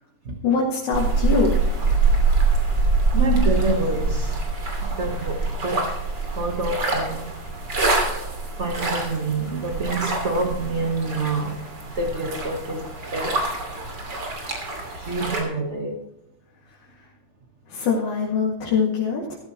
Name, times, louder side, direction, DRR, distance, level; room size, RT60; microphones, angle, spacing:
voice 1, 0.4-1.9 17.7-19.4, left 5 dB, 85° left, -3 dB, 3.7 m, -23 dB
sound 1, 0.9-15.4, right 3 dB, 35° right, 3.1 m, -24 dB
voice 2, 3.1-4.5 4.8-6.0 6.2-7.3 8.6-13.5 15.0-16.0, right 3 dB, 85° right, 3 dB, 0.6 m, -27 dB
15.0 x 14.5 x 3.0 m, 0.91 s
omnidirectional pair, 3.4 m